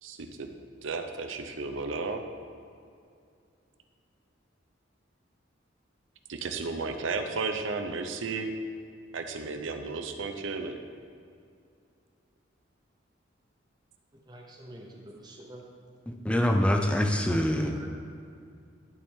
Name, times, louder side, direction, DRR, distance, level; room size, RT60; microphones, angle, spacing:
voice 1, 0.0-0.5 0.8-2.2 6.3-8.5 9.1-10.8, right 4 dB, 80° right, 6 dB, 0.6 m, -33 dB
voice 2, 14.3-15.6 16.7-17.9, right 1 dB, 20° right, 0 dB, 0.9 m, -45 dB
voice 3, 16.1-17.8, left 1 dB, 5° left, 3 dB, 0.4 m, -25 dB
11.5 x 4.3 x 3.6 m, 2.4 s
head